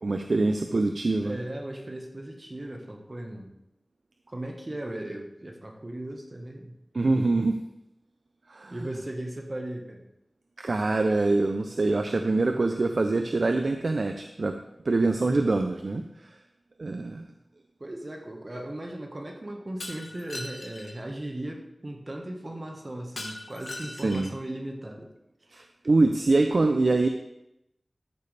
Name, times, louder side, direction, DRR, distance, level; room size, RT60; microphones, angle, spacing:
voice 1, 0.0-1.4 6.9-7.6 8.5-8.8 10.6-14.5 14.8-16.0 16.8-17.3 24.0-24.3 25.5-27.1, right 3 dB, 70° right, 6 dB, 0.6 m, -24 dB
voice 2, 1.2-3.5 4.3-6.7 8.7-10.0 17.8-25.1 25.5-25.7, right 1 dB, 40° right, 2 dB, 1.4 m, -37 dB
Shatter, 19.8-20.9 23.2-24.4, left 2 dB, 80° left, 1.4 m, -40 dB
13.5 x 6.9 x 3.4 m, 0.85 s
wide cardioid pair, 55°, 0 cm